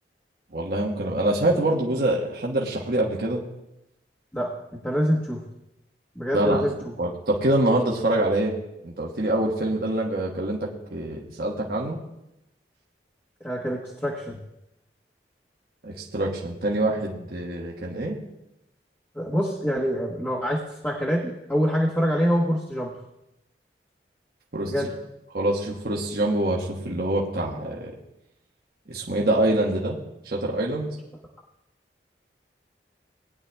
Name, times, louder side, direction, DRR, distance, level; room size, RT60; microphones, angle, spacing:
voice 1, 0.5-3.4 6.3-6.6 7.0-8.5 8.8-12.0 15.8-18.2 24.5-24.7 25.3-28.0 28.9-30.0 30.2-30.9, right 1 dB, 60° right, -2 dB, 1.2 m, -25 dB
voice 2, 4.3-5.4 6.1-6.7 13.4-14.4 19.1-22.9 24.7-24.9, equal, 10° left, -6 dB, 1.2 m, -25 dB
20.0 x 9.9 x 2.2 m, 0.89 s
head